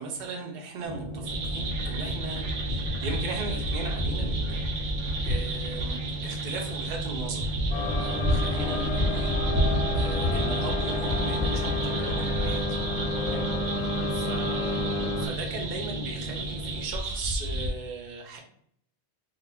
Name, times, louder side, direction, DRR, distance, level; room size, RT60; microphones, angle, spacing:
voice 1, 0.0-4.9 5.2-7.4 8.0-12.8 13.2-13.5 13.8-18.4, right 3 dB, 50° right, 2 dB, 0.6 m, -38 dB
sound 1, 0.8-16.9, right 1 dB, 55° left, 0.3 m, -36 dB
sound 2, 1.2-17.7, right 1 dB, 80° right, 0.9 m, -31 dB
sound 3, 7.7-15.3, left 2 dB, 70° left, 0.8 m, -30 dB
2.4 x 2.1 x 3.2 m, 0.67 s
omnidirectional pair, 1.2 m